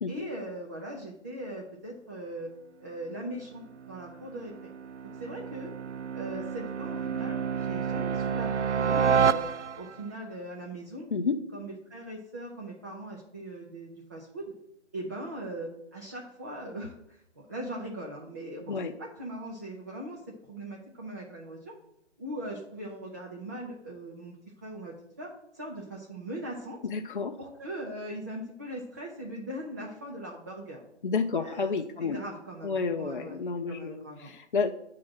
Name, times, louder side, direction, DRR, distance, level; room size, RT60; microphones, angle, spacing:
voice 1, 0.1-2.5 2.8-4.7 5.0-5.7 6.1-9.5 9.8-11.1 11.5-14.5 14.9-21.7 22.2-24.4 24.6-26.8 27.4-30.8 31.4-31.7 32.0-33.4 33.7-34.3, right 1 dB, 15° right, -3 dB, 0.5 m, -40 dB
sound 1, 3.6-10.1, right 6 dB, 80° right, 0.5 m, -29 dB
voice 2, 26.8-27.4 31.0-32.2 32.6-34.7, left 5 dB, 45° left, 5 dB, 0.5 m, -30 dB
10.0 x 3.8 x 6.1 m, 0.81 s
figure-of-eight pair, 140°, 35 cm